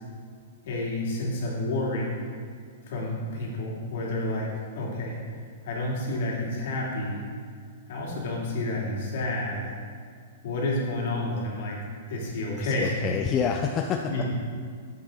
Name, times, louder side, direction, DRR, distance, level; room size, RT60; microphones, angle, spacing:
voice 1, 0.6-2.2 2.9-5.2 5.6-7.2 7.9-9.7 10.4-11.8 12.1-12.9 14.1-14.2, left 2 dB, 60° left, -3 dB, 2.8 m, -30 dB
voice 2, 12.6-14.1, left 7 dB, 20° left, 3 dB, 0.4 m, -27 dB
10.5 x 7.9 x 3.9 m, 2.1 s
hypercardioid pair, 160°, 0 cm